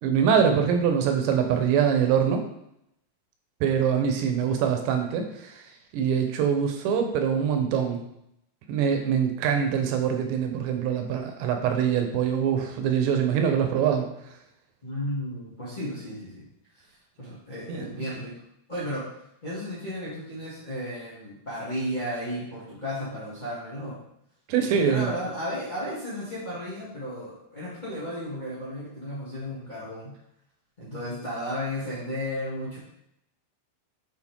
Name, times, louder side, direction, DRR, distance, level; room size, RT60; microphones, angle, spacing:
voice 1, 0.0-2.4 3.6-5.6 5.9-8.0 8.7-14.1 17.7-17.9 24.5-25.1, right 7 dB, 75° right, 5 dB, 2.9 m, -24 dB
voice 2, 14.8-16.4 17.2-18.3 18.7-19.0 19.4-24.0 24.6-30.1 30.8-32.8, equal, 35° left, -9 dB, 0.7 m, -34 dB
8.5 x 5.2 x 3.6 m, 0.78 s
omnidirectional pair, 5.5 m